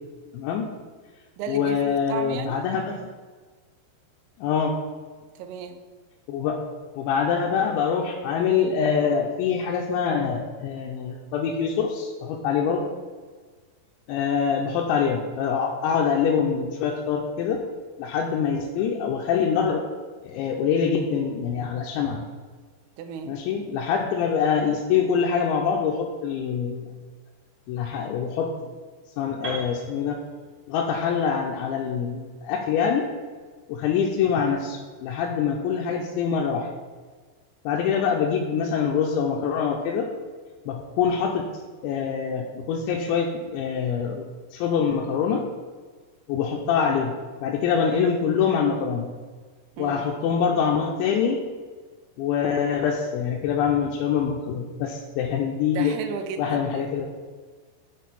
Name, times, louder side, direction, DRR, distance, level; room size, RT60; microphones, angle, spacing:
voice 1, 0.3-0.7 1.5-3.0 4.4-4.8 6.3-6.6 7.0-12.9 14.1-17.7 18.0-19.9 20.2-22.2 23.2-26.8 27.7-28.5 29.2-30.2 30.7-33.0 33.7-36.7 37.7-40.1 40.7-41.4 41.8-44.3 44.5-45.4 46.3-49.1 49.8-51.4 52.2-56.0 56.4-57.1, left 7 dB, 90° left, 0 dB, 3.0 m, -25 dB
voice 2, 1.4-2.7 5.4-5.8 23.0-23.4 49.8-50.1 55.7-56.9, right 6 dB, 85° right, 6 dB, 2.3 m, -34 dB
Piano, 29.4-33.4, right 3 dB, 55° right, 1.4 m, -40 dB
6.4 x 6.3 x 4.1 m, 1.5 s
omnidirectional pair, 5.2 m